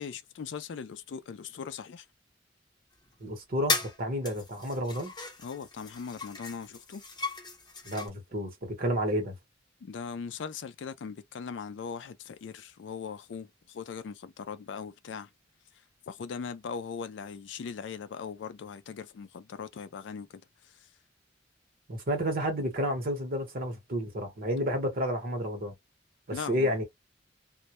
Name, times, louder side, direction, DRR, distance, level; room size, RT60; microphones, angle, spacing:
voice 1, 0.0-2.0 5.4-7.0 9.8-15.3 16.1-20.4 26.3-26.7, left 6 dB, 70° left, 0.4 m, -39 dB
sound 1, 3.1-3.2 3.7-4.0 4.3-8.1, left 3 dB, 25° left, 0.8 m, -36 dB
voice 2, 3.2-5.1 7.8-9.3 21.9-25.7 26.3-26.8, equal, 50° right, 0.9 m, -31 dB
2.2 x 2.1 x 2.7 m
head